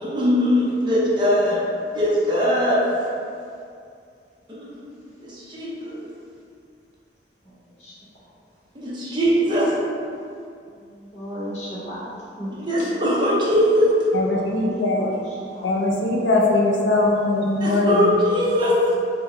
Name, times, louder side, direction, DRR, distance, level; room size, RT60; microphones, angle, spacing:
voice 1, 0.0-1.6 1.9-2.8 4.5-4.9 5.2-6.0 8.7-9.7 12.5-13.9 17.6-18.8, equal, 25° right, -8 dB, 0.7 m, -21 dB
voice 2, 7.4-7.9 10.8-12.1 12.4-12.6 14.6-14.7 14.9-15.2 15.5-15.7, equal, 40° left, -9 dB, 0.9 m, -35 dB
voice 3, 14.1-15.2 15.6-18.1, left 2 dB, 90° left, -2 dB, 0.4 m, -21 dB
2.8 x 2.2 x 3.6 m, 2.4 s
head